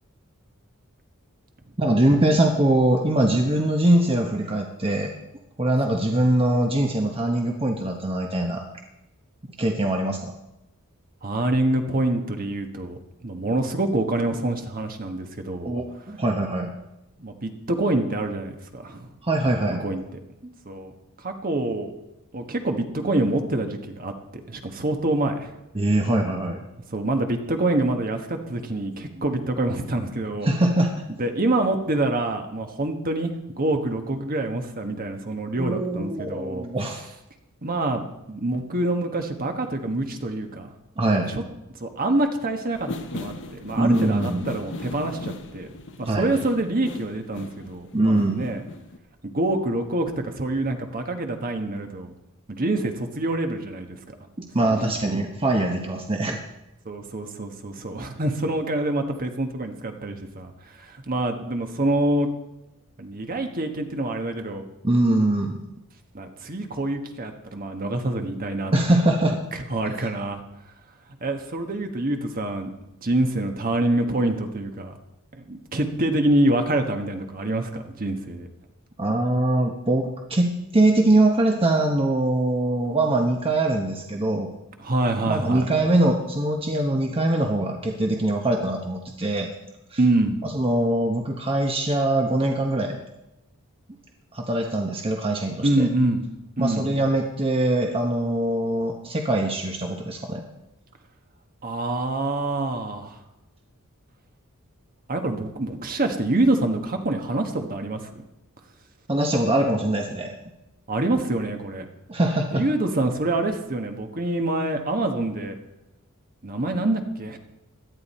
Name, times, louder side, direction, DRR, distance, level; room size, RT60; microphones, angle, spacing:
voice 1, 1.8-5.1 5.6-8.6 9.6-10.3 15.6-16.7 19.2-19.8 20.4-20.5 25.7-26.6 29.2-29.3 30.4-30.9 35.6-37.0 41.0-41.4 43.7-44.5 46.0-46.3 47.9-48.5 54.4-56.4 64.8-65.6 68.7-69.4 79.0-84.5 85.3-89.5 89.9-90.0 90.4-93.0 94.3-95.9 96.6-100.4 109.1-110.3 112.1-112.6, right 1 dB, 25° right, 2 dB, 1.1 m, -22 dB
voice 2, 11.2-15.8 17.2-19.1 19.8-20.0 20.6-20.9 21.2-21.9 22.3-25.5 26.9-30.5 31.2-36.7 37.6-40.7 41.0-41.4 41.8-45.7 46.0-48.6 49.2-52.1 52.5-54.1 54.6-54.7 56.8-60.5 60.8-62.3 63.0-64.6 66.1-68.7 69.7-70.4 71.2-72.7 73.0-74.9 75.3-78.5 84.8-85.7 90.0-90.4 95.6-96.2 96.6-96.9 101.6-103.2 105.1-108.0 110.9-111.8 112.5-115.6 116.4-117.4, right 2 dB, 40° right, 5 dB, 1.4 m, -26 dB
sound 1, 42.7-49.0, left 2 dB, 55° left, 1.1 m, -37 dB
17.5 x 12.0 x 4.3 m, 0.91 s
head